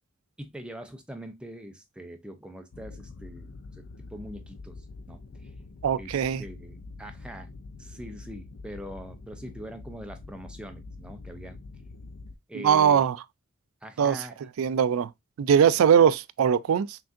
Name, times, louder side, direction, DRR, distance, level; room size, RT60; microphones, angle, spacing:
voice 1, 0.4-5.5 5.9-7.5 7.8-11.6 12.5-13.0 13.8-14.5, equal, 5° right, 0.5 m, -43 dB
sound 1, 2.7-12.4, left 3 dB, 65° left, 0.5 m, -45 dB
voice 2, 5.8-6.4 12.5-13.2 14.0-14.2 14.6-15.1 15.4-17.0, right 8 dB, 80° right, 0.3 m, -21 dB
5.9 x 2.6 x 2.5 m
head